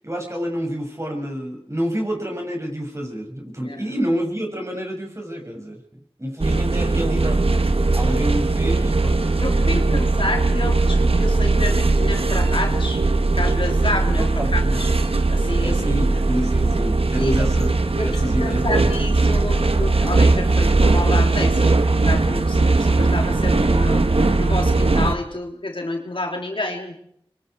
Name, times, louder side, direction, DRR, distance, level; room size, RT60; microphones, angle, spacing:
voice 1, 0.0-5.8 6.2-7.7 7.9-9.2 14.2-14.8 15.6-17.8 18.0-19.0, equal, 30° right, 1 dB, 6.8 m, -28 dB
sound 1, 6.4-25.1, right 3 dB, 80° right, 1.2 m, -19 dB
voice 2, 9.4-13.0 13.4-14.9 15.3-15.8 16.1-16.2 17.2-17.3 18.0-26.9, left 2 dB, 65° left, 1 dB, 3.3 m, -29 dB
25.0 x 23.0 x 4.7 m, 0.70 s
wide cardioid pair, 40°, 10 cm